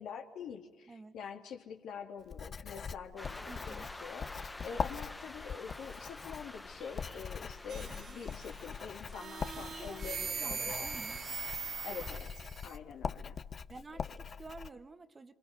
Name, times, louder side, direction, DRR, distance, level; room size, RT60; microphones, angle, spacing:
voice 1, 0.0-10.9 11.8-13.4, left 6 dB, 80° left, 3 dB, 3.1 m, -46 dB
Writing, 2.3-14.7, left 6 dB, 45° left, 0.9 m, -42 dB
sound 1, 3.2-12.2, left 2 dB, 15° left, 1.2 m, -49 dB
voice 2, 3.5-3.9 9.5-10.0 10.4-11.2 13.7-15.3, right 3 dB, 30° right, 8 dB, 1.8 m, -50 dB
sound 2, 7.7-8.6 9.1-12.8, right 6 dB, 50° right, 0.8 m, -41 dB
27.5 x 26.5 x 6.9 m, 1.2 s
cardioid pair, 90°, 0 cm